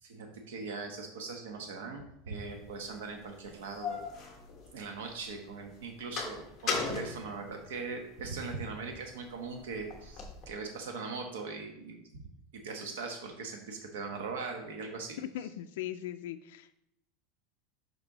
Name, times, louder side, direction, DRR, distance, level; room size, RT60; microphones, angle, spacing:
voice 1, 0.0-4.0 4.7-12.1 12.5-15.2, right 4 dB, 90° right, 3 dB, 1.0 m, -40 dB
sound 1, 2.6-2.7 3.4-5.2 5.6-8.2 8.7-10.5, left 5 dB, 25° left, 1.2 m, -38 dB
voice 2, 15.2-16.8, left 12 dB, 75° left, 8 dB, 0.4 m, -39 dB
6.0 x 5.4 x 3.9 m, 0.76 s
supercardioid pair, 160°, 0 cm